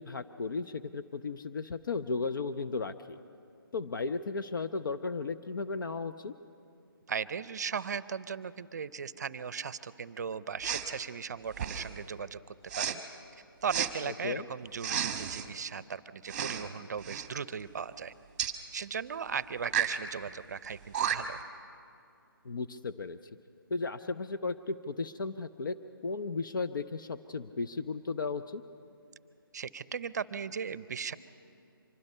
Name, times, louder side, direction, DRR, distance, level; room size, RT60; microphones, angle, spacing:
voice 1, 0.0-3.2 3.7-6.3 14.0-14.4 22.4-23.2 23.7-25.8 26.0-28.6, left 4 dB, 60° left, 12 dB, 0.7 m, -35 dB
voice 2, 7.1-13.0 13.6-18.1 18.7-21.4 29.5-31.2, right 6 dB, 45° right, 16 dB, 0.6 m, -37 dB
Respiratory sounds, 10.6-10.9 11.5-12.0 12.7-13.0 13.7-13.9 14.8-15.5 16.3-16.7 17.0-17.3 18.4-18.6 19.6-20.0 20.6-20.7 20.9-21.4, right 8 dB, 25° right, 1.1 m, -32 dB
25.0 x 20.5 x 5.5 m, 2.5 s
figure-of-eight pair, 160°, 12 cm